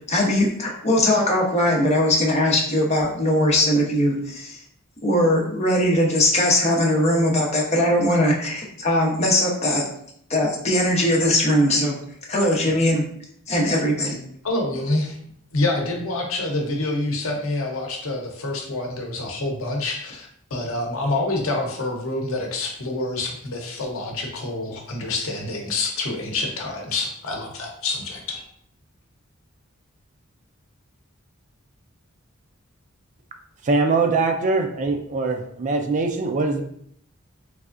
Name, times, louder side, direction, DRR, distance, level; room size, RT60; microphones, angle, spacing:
voice 1, 0.1-4.6 5.0-9.8 10.3-11.9 12.3-13.0 13.5-14.2, left 1 dB, 30° left, -2 dB, 0.8 m, -20 dB
voice 2, 14.4-15.2 15.5-28.4, left 2 dB, 80° left, 1 dB, 0.8 m, -27 dB
voice 3, 33.6-36.6, right 3 dB, 35° right, 5 dB, 0.3 m, -22 dB
3.5 x 3.3 x 2.5 m, 0.68 s
head